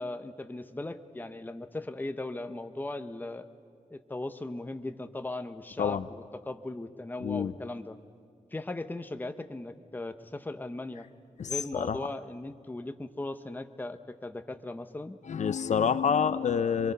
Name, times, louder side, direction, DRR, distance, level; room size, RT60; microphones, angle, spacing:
voice 1, 0.0-3.5 3.9-8.0 8.5-11.1 11.4-15.2, left 2 dB, 15° left, 9 dB, 0.8 m, -38 dB
voice 2, 7.2-7.5 11.4-12.0 15.3-16.9, left 7 dB, 65° left, 13 dB, 0.6 m, -27 dB
27.0 x 23.0 x 5.5 m, 2.1 s
wide cardioid pair, 145°, 13 cm